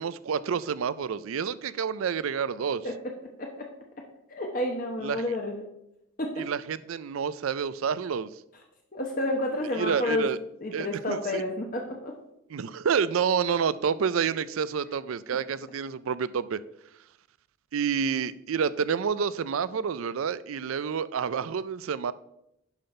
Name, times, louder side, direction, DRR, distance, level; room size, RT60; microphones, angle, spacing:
voice 1, 0.0-2.9 5.0-5.2 6.4-8.3 9.8-10.4 10.7-11.4 12.5-16.6 17.7-22.1, right 6 dB, 80° right, 17 dB, 0.4 m, -29 dB
voice 2, 3.4-3.7 4.3-5.7 6.2-6.5 8.9-10.3 10.6-12.2, left 1 dB, 40° left, 1 dB, 0.9 m, -30 dB
10.5 x 5.8 x 4.3 m, 0.82 s
head